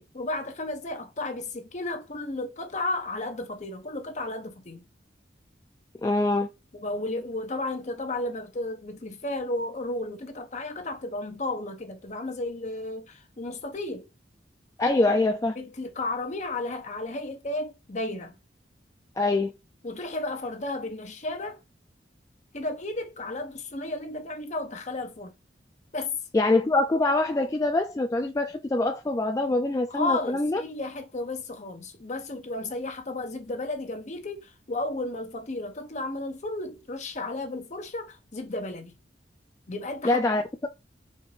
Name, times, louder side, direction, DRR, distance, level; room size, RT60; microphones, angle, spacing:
voice 1, 0.0-4.8 6.7-14.1 15.6-18.3 19.8-21.6 22.5-25.3 25.9-26.2 29.9-38.9 39.7-40.2, left 2 dB, 40° left, 0.7 m, -33 dB
voice 2, 6.0-6.5 14.8-15.6 19.2-19.5 26.3-30.6 40.0-40.7, left 2 dB, 20° left, 0.3 m, -24 dB
4.3 x 2.5 x 2.9 m
head